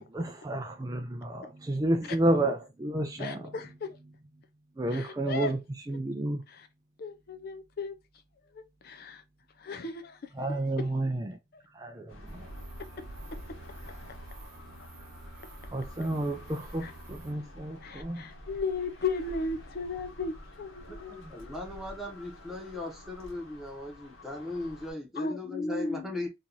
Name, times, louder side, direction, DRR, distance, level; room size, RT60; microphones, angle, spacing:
voice 1, 0.0-4.1 4.8-6.4 10.3-11.4 11.7-12.5 15.7-18.3, right 1 dB, 20° right, 0.4 m, -31 dB
voice 2, 3.2-4.0 4.9-5.5 6.5-6.7 7.0-7.9 8.5-9.2 9.6-10.3 13.8-13.9 16.8-16.9 17.8-21.2 25.2-26.2, left 4 dB, 50° left, 0.5 m, -36 dB
sound 1, 12.1-24.9, equal, 85° left, 1.2 m, -48 dB
sound 2, 12.3-17.3, right 3 dB, 50° right, 0.9 m, -51 dB
voice 3, 21.1-26.3, left 2 dB, ahead, 1.0 m, -38 dB
2.9 x 2.6 x 3.8 m
head